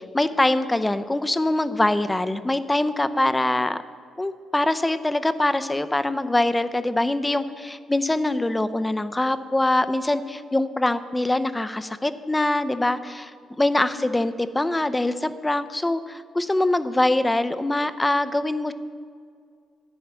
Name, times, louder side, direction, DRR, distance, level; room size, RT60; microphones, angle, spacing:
voice 1, 0.0-3.8 4.2-18.7, left 1 dB, 15° left, 12 dB, 0.5 m, -23 dB
10.0 x 9.2 x 5.7 m, 2.2 s
cardioid pair, 90°, 0 cm